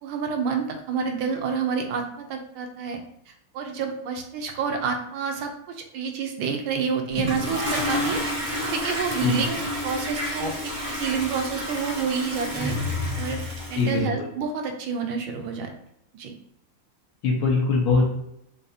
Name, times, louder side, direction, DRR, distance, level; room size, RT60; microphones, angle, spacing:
voice 1, 0.0-3.0 3.3-8.3 8.6-12.8 13.2-13.4 13.7-15.7 16.1-16.3, right 5 dB, 75° right, 4 dB, 1.5 m, -29 dB
Toilet flush, 7.1-13.9, left 1 dB, 50° right, 0.3 m, -29 dB
voice 2, 13.7-14.3 17.2-18.1, left 4 dB, 85° left, -1 dB, 2.0 m, -22 dB
6.5 x 2.9 x 2.7 m, 0.78 s
omnidirectional pair, 2.3 m